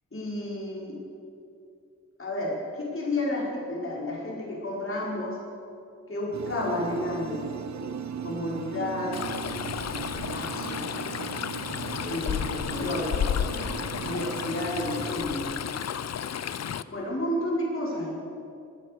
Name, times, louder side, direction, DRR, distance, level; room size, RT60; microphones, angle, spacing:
voice 1, 0.1-1.0 2.2-5.4 6.1-7.4 8.2-9.2 10.3-10.8 12.0-13.2 13.9-15.5 16.9-18.1, left 1 dB, 45° left, -5 dB, 5.1 m, -31 dB
sound 1, 6.3-15.2, right 7 dB, 65° right, 0.8 m, -37 dB
Stream, 9.1-16.8, left 8 dB, 60° left, 0.5 m, -32 dB
23.5 x 9.0 x 6.8 m, 2.6 s
cardioid pair, 60°, 30 cm